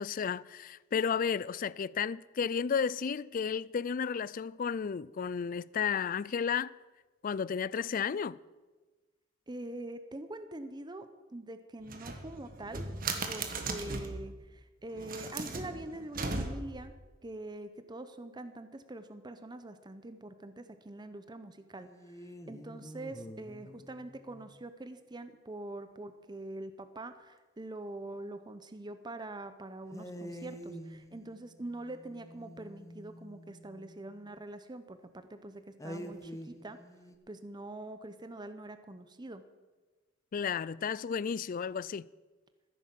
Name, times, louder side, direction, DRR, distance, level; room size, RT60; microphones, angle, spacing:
voice 1, 0.0-6.7 7.2-8.4 40.3-42.1, left 6 dB, 45° left, 0.4 m, -33 dB
voice 2, 9.5-12.9 13.3-16.9 17.2-36.8 37.3-39.4, right 2 dB, 25° right, 0.8 m, -44 dB
sound 1, 11.9-14.2 14.9-16.9, right 3 dB, 50° right, 1.6 m, -37 dB
sound 2, 21.8-24.6 29.9-34.3 35.8-37.2, equal, 15° left, 1.1 m, -47 dB
14.5 x 10.5 x 7.5 m
head